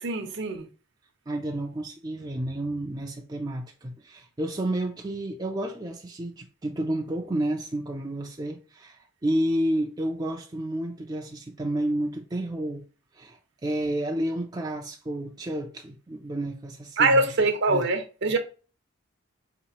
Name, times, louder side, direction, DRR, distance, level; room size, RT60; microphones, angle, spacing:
voice 1, 0.0-0.7 17.0-18.4, right 2 dB, 60° right, 0.7 m, -23 dB
voice 2, 1.3-12.8 13.1-17.3 17.7-17.8, right 1 dB, 20° right, 0.4 m, -30 dB
4.6 x 2.9 x 2.9 m
head